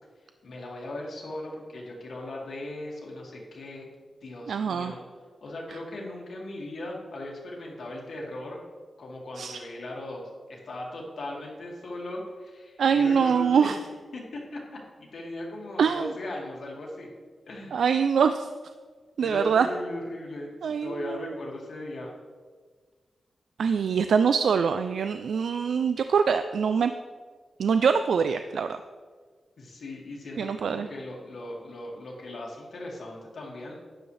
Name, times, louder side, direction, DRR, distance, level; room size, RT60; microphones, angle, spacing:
voice 1, 0.4-3.9 4.2-5.0 5.4-8.6 9.0-10.2 10.5-13.7 14.1-14.6 15.0-17.1 17.5-17.8 19.2-22.2 29.6-33.7, left 1 dB, 60° left, -2 dB, 2.1 m, -38 dB
voice 2, 4.5-4.9 9.4-9.6 12.8-13.8 15.8-16.1 17.7-18.5 19.2-19.7 20.6-21.3 23.6-26.9 27.6-28.8 30.4-30.9, right 6 dB, 90° right, 9 dB, 0.3 m, -24 dB
11.5 x 9.7 x 3.3 m, 1.5 s
wide cardioid pair, 170°, 0 cm